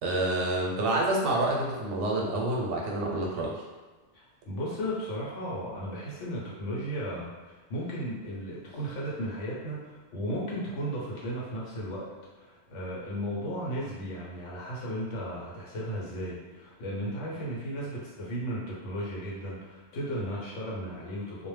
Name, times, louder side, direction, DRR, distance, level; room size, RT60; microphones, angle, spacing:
voice 1, 0.0-3.6, right 2 dB, 90° right, -2 dB, 1.0 m, -28 dB
voice 2, 4.1-12.1 12.4-21.5, equal, 90° left, -5 dB, 1.1 m, -35 dB
2.4 x 2.1 x 3.2 m, 1.3 s
omnidirectional pair, 1.2 m